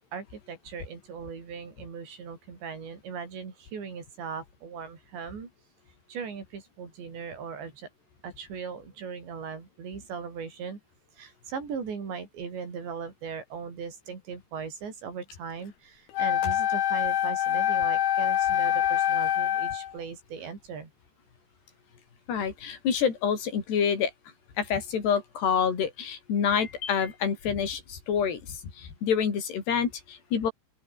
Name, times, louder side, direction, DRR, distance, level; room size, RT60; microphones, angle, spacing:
voice 1, 0.0-5.5 6.1-7.9 8.2-10.8 11.1-20.9, right 6 dB, 65° right, 7.8 m, -39 dB
Wind instrument woodwind instrument, 16.1-19.9, left 11 dB, 75° left, 4.5 m, -25 dB
voice 2, 22.3-24.1 24.6-30.5, left 7 dB, 60° left, 6.6 m, -27 dB
open air
omnidirectional pair, 5.4 m